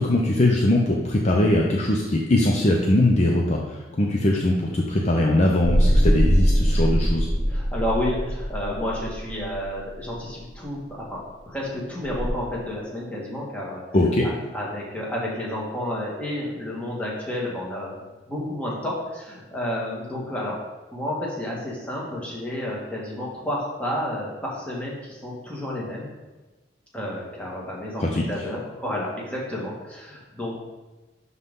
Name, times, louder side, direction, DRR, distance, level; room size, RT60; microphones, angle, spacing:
voice 1, 0.0-7.3 13.9-14.3 28.0-28.2, left 1 dB, 35° left, -1 dB, 0.7 m, -21 dB
sound 1, 5.6-10.1 12.1-12.3, equal, 20° right, 1.3 m, -22 dB
voice 2, 7.5-13.8 14.2-17.9 18.3-20.6 20.9-26.1 26.9-30.6, left 1 dB, 5° left, -5 dB, 1.8 m, -31 dB
11.5 x 4.0 x 3.7 m, 1.2 s
head